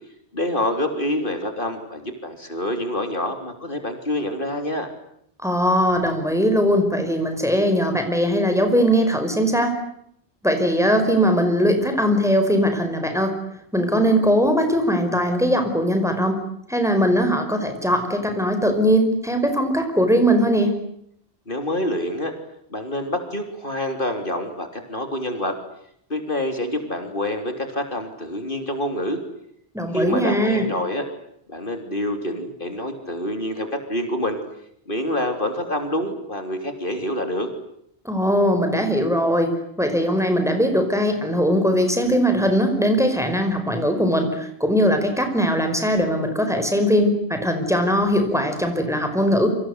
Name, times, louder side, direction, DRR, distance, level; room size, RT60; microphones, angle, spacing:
voice 1, 0.3-4.9 21.5-22.3 22.7-25.6 26.1-29.2 29.9-31.1 31.5-34.4 34.9-37.5, left 1 dB, 55° left, 6 dB, 3.8 m, -26 dB
voice 2, 5.4-9.8 10.4-13.4 13.7-16.4 16.7-20.8 29.7-30.7 38.1-49.5, equal, 5° right, 6 dB, 5.2 m, -20 dB
28.0 x 25.5 x 8.2 m, 0.72 s
omnidirectional pair, 1.1 m